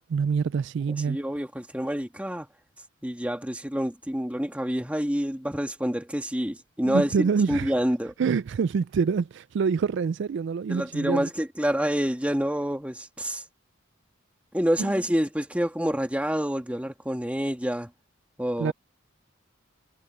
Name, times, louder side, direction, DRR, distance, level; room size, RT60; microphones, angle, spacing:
voice 1, 0.1-1.2 6.9-7.7 8.2-11.3 14.8-14.9 18.6-18.7, right 5 dB, 55° right, 0.3 m, -26 dB
voice 2, 1.1-2.5 3.0-8.1 10.7-13.4 14.5-17.9 18.4-18.7, equal, 5° right, 1.8 m, -27 dB
head